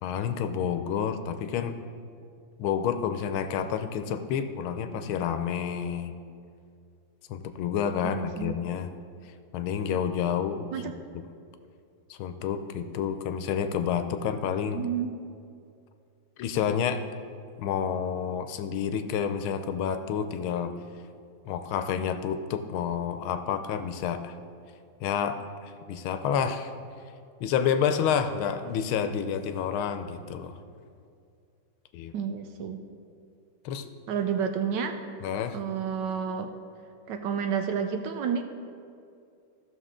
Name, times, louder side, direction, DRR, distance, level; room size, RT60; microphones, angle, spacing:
voice 1, 0.0-1.8 2.6-6.1 7.3-8.9 9.5-10.7 12.1-14.8 16.4-17.0 17.6-20.7 21.5-24.3 25.0-26.7 27.4-30.5 31.9-32.1 33.6-33.9 35.2-35.6, left 8 dB, 90° left, 9 dB, 1.5 m, -29 dB
voice 2, 8.0-8.6 10.7-10.9 14.7-15.1 32.1-32.8 34.1-35.0 35.5-36.5 37.1-38.4, right 7 dB, 70° right, 6 dB, 1.1 m, -30 dB
15.0 x 6.5 x 3.7 m, 2.4 s
omnidirectional pair, 2.2 m